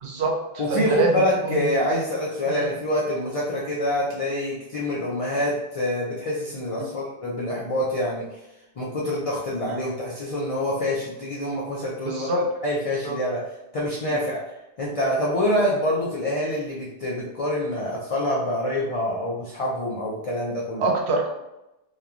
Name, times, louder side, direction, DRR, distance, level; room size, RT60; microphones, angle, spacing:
voice 1, 0.0-1.7 2.5-2.7 6.8-6.9 9.7-9.8 12.0-12.5 13.0-13.2 14.1-14.2 20.8-21.3, right 3 dB, 75° right, 1 dB, 0.8 m, -26 dB
voice 2, 0.6-8.4 8.8-13.4 13.7-14.4 14.8-20.8, left 1 dB, 60° left, -5 dB, 0.3 m, -26 dB
2.9 x 2.2 x 2.4 m, 0.94 s
omnidirectional pair, 1.2 m